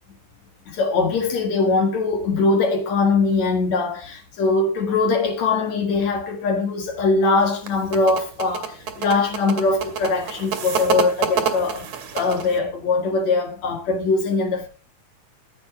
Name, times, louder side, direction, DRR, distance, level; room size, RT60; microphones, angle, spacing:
voice 1, 0.7-11.9 12.1-14.7, left 3 dB, 60° left, 2.8 m, -21 dB
sound 1, 7.4-12.6, right 7 dB, 60° right, 2.8 m, -27 dB
14.5 x 8.0 x 4.9 m
omnidirectional pair, 3.7 m